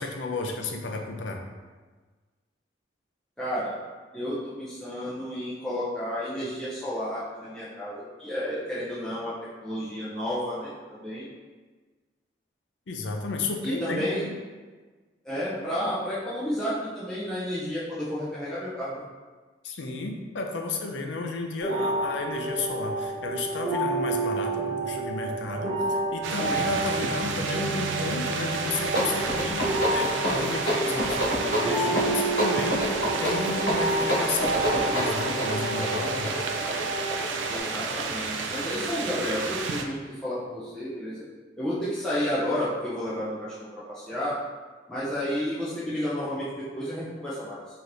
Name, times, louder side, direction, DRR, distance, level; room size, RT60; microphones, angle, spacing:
voice 1, 0.0-1.4 12.9-14.3 19.6-36.4, left 3 dB, 80° left, 3 dB, 0.5 m, -33 dB
voice 2, 3.4-3.8 4.1-9.3 9.6-11.3 13.6-14.2 15.2-19.0 37.5-41.2 41.6-44.4 44.9-46.4 46.7-47.6, equal, 5° left, -11 dB, 0.6 m, -31 dB
sound 1, 21.6-37.6, right 2 dB, 40° right, 1.5 m, -30 dB
sound 2, 26.2-39.8, right 4 dB, 90° right, 0.4 m, -32 dB
sound 3, 28.6-38.9, equal, 60° left, 1.4 m, -29 dB
4.8 x 2.9 x 2.6 m, 1.4 s
head